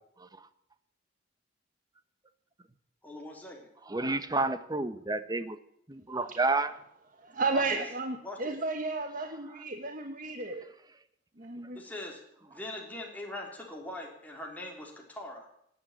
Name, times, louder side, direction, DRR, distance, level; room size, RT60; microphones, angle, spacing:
voice 1, 3.0-3.7 7.5-7.8 8.2-8.6 11.7-15.5, left 1 dB, 10° left, 0 dB, 3.3 m, -42 dB
voice 2, 3.9-5.6 5.9-6.7, right 2 dB, 20° right, 12 dB, 1.0 m, -30 dB
voice 3, 7.2-10.6 11.4-11.8, right 3 dB, 45° right, 5 dB, 1.3 m, -33 dB
18.0 x 9.1 x 8.8 m, 0.73 s
head